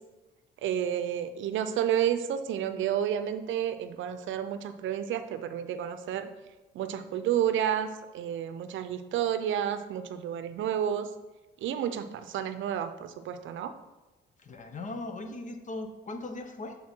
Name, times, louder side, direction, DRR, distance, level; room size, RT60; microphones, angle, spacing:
voice 1, 0.6-6.3 6.7-11.1 11.6-13.7, right 10 dB, 75° right, 10 dB, 0.5 m, -30 dB
voice 2, 14.4-16.8, left 2 dB, 40° left, 6 dB, 0.9 m, -38 dB
7.3 x 4.1 x 4.4 m, 1.1 s
cardioid pair, 90°, 20 cm